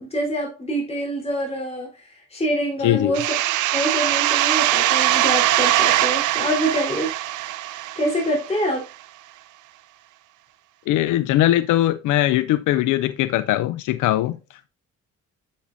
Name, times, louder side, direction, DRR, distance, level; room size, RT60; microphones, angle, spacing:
voice 1, 0.0-3.2 3.7-7.1 8.0-8.9, equal, 20° left, 3.7 m, -25 dB
voice 2, 2.8-3.1 10.9-14.4, left 14 dB, 85° left, 0.5 m, -20 dB
sound 1, 3.1-8.6, right 14 dB, 85° right, 0.6 m, -21 dB
8.4 x 7.4 x 2.6 m
cardioid pair, 90°, 30 cm